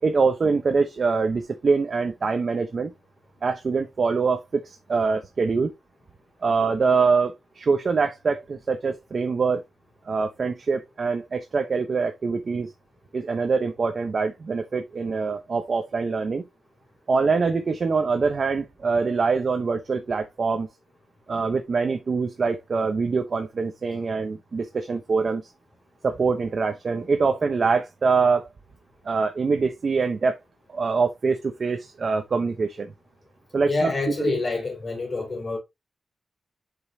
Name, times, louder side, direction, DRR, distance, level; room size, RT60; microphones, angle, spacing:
voice 1, 0.0-2.9 3.4-5.7 6.4-9.6 10.0-12.7 13.1-16.4 17.1-20.7 21.3-25.4 26.0-28.5 29.0-30.4 30.7-32.9 33.5-33.9 34.2-34.3, right 4 dB, 50° right, 0.9 m, -24 dB
voice 2, 33.7-35.6, left 3 dB, 40° left, 3.3 m, -27 dB
7.8 x 5.5 x 2.8 m
wide cardioid pair, 145°, 0 cm